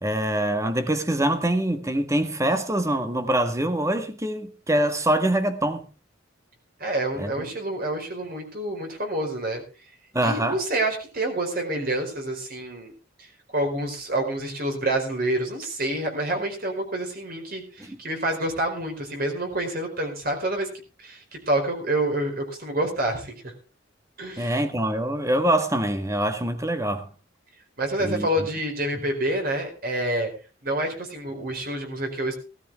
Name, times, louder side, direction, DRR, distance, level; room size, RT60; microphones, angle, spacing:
voice 1, 0.0-5.8 7.2-7.5 10.1-10.6 17.8-18.0 24.4-27.1 28.0-28.3, right 1 dB, 15° right, 1.5 m, -24 dB
voice 2, 6.8-9.6 10.2-12.9 13.2-13.3 13.5-20.7 21.0-23.5 24.2-24.6 27.8-30.3 30.6-32.4, right 1 dB, 50° right, 4.8 m, -28 dB
17.5 x 13.0 x 3.6 m
head